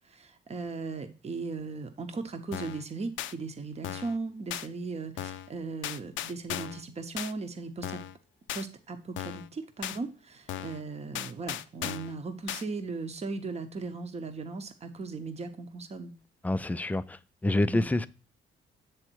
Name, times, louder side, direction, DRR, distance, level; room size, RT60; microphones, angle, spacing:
voice 1, 0.1-8.0 8.5-16.1 17.7-17.9, right 4 dB, 35° right, 0.9 m, -37 dB
sound 1, 2.5-2.8 3.2-3.3 3.8-4.2 4.5-4.7 5.2-5.5 5.8-6.8 7.2-7.3 7.8-8.2 8.5-8.7 9.2-9.5 9.8-10.0 10.5-10.8 11.1-12.1 12.5-12.6, left 12 dB, 75° left, 0.4 m, -36 dB
voice 2, 16.4-18.1, left 2 dB, 10° left, 0.3 m, -27 dB
7.9 x 3.4 x 4.5 m
cardioid pair, 90°, 20 cm